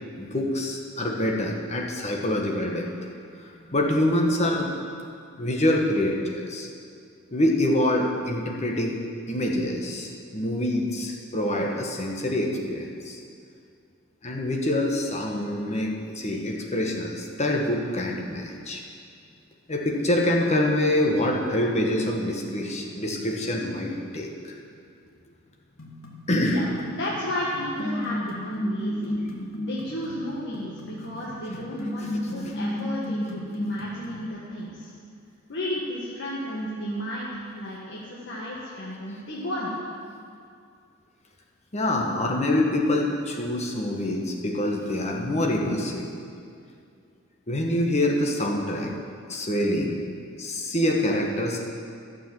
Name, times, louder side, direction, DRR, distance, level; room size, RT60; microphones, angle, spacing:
voice 1, 0.1-2.9 3.4-4.7 5.3-6.7 7.3-13.2 14.2-18.8 19.7-24.6 26.3-26.6 32.4-32.5 41.7-46.1 47.5-48.9 49.3-50.0 50.4-51.6, left 1 dB, 35° left, 0 dB, 1.4 m, -26 dB
sound 1, 25.8-34.3, left 1 dB, 85° left, 1.7 m, -33 dB
voice 2, 26.4-29.1 29.6-34.9 35.5-39.8, left 1 dB, 60° left, -6 dB, 1.6 m, -33 dB
12.0 x 7.0 x 7.7 m, 2.3 s
head